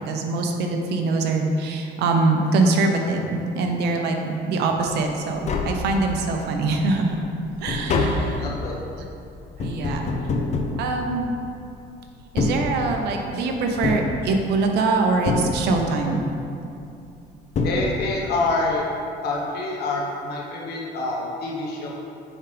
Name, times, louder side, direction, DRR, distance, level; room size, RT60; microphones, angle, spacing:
voice 1, 0.0-7.2 7.6-8.4 9.6-10.1 10.8-11.3 12.3-16.2, right 3 dB, 75° right, 3 dB, 0.8 m, -23 dB
Tap, 5.0-5.1 5.3-6.4 6.8-11.6 12.2-13.3 13.8-14.8 15.3-16.1 17.1-17.2 17.5-18.4 18.6-18.7, left 3 dB, 45° left, 0.7 m, -27 dB
voice 2, 8.1-8.8 17.6-18.9 19.2-21.9, left 2 dB, 70° left, -3 dB, 1.4 m, -27 dB
7.3 x 5.0 x 3.4 m, 2.6 s
cardioid pair, 110°, 17 cm